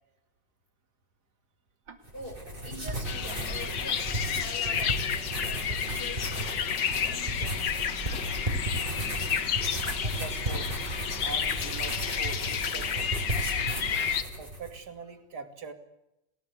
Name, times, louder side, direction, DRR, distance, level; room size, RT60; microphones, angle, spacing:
Tick-tock, 1.8-2.0 2.8-3.0 3.8-4.0 4.8-5.0 5.8-6.0 6.8-7.0 7.8-8.0 8.8-9.0 9.8-10.0 10.8-11.0 11.8-12.0 12.8-13.0, right 5 dB, 80° right, 3.5 m, -49 dB
voice 1, 2.1-7.7, equal, 30° left, 3 dB, 6.2 m, -45 dB
sound 1, 2.1-14.8, right 1 dB, 25° right, 6.2 m, -35 dB
sound 2, 3.0-14.2, left 8 dB, 70° left, 2.0 m, -31 dB
voice 2, 10.0-10.7 11.2-13.2 14.0-15.7, right 4 dB, 60° right, 9 dB, 3.1 m, -43 dB
30.0 x 20.5 x 8.4 m, 0.91 s
omnidirectional pair, 2.0 m